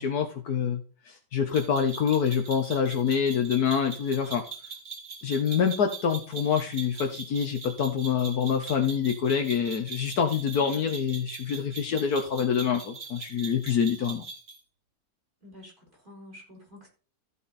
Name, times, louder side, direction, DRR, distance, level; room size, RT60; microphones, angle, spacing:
voice 1, 0.0-4.4 5.2-14.2, left 7 dB, 75° left, 5 dB, 1.6 m, -26 dB
sound 1, 1.5-14.6, right 5 dB, 75° right, 3.1 m, -42 dB
voice 2, 15.4-16.9, left 1 dB, 30° right, 0 dB, 4.6 m, -49 dB
14.5 x 5.6 x 4.2 m, 0.37 s
omnidirectional pair, 1.7 m